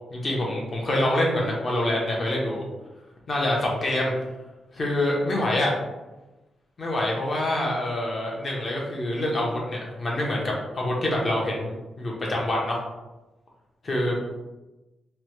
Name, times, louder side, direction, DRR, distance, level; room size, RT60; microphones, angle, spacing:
voice 1, 0.1-2.6 3.3-4.1 4.7-5.7 6.8-12.8 13.8-14.3, left 1 dB, 30° left, -2 dB, 0.7 m, -26 dB
2.9 x 2.1 x 3.0 m, 1.1 s
wide cardioid pair, 160°, 0 cm